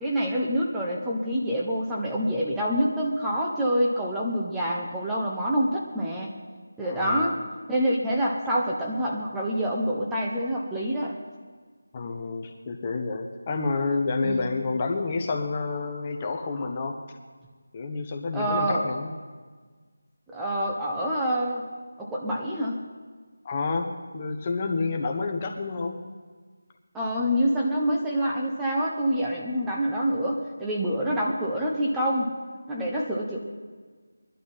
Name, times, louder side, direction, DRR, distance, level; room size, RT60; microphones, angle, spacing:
voice 1, 0.0-6.3 6.8-7.4 7.7-11.2 14.2-14.5 18.3-18.9 20.3-21.6 22.0-22.8 26.9-32.3 32.7-33.4, equal, 5° right, -4 dB, 1.0 m, -26 dB
voice 2, 6.8-7.4 11.9-17.0 17.7-19.1 23.4-26.0, left 3 dB, 20° left, 3 dB, 1.0 m, -29 dB
21.0 x 11.5 x 5.7 m, 1.5 s
figure-of-eight pair, 170°, 0 cm